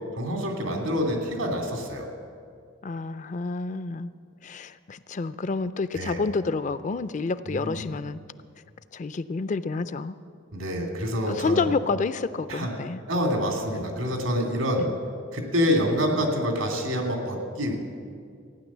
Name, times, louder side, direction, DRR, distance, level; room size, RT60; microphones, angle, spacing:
voice 1, 0.2-2.1 5.9-6.2 7.5-7.8 10.5-11.7 12.5-12.7 13.1-14.8 15.3-17.8, equal, 85° right, 2 dB, 2.7 m, -27 dB
voice 2, 2.8-4.1 4.4-8.2 8.9-10.1 11.3-13.0 14.8-15.0, left 4 dB, 35° left, 14 dB, 0.4 m, -29 dB
16.0 x 9.6 x 7.3 m, 2.2 s
head